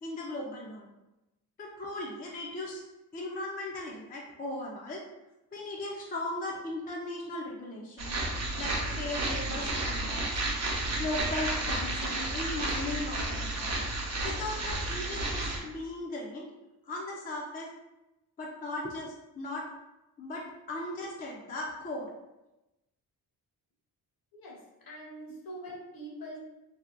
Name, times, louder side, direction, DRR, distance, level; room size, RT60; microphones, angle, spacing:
voice 1, 0.0-0.9 1.6-2.8 3.1-5.0 5.5-8.2 8.6-10.4 11.0-13.8 14.2-16.5 16.8-17.7 18.4-19.6 20.2-22.1, left 2 dB, 25° left, -2 dB, 0.3 m, -37 dB
sound 1, 8.0-15.6, right 2 dB, 40° right, 0.5 m, -32 dB
voice 2, 24.3-26.4, right 1 dB, 60° left, -3 dB, 0.9 m, -44 dB
2.7 x 2.1 x 2.4 m, 0.98 s
cardioid pair, 105°, 40 cm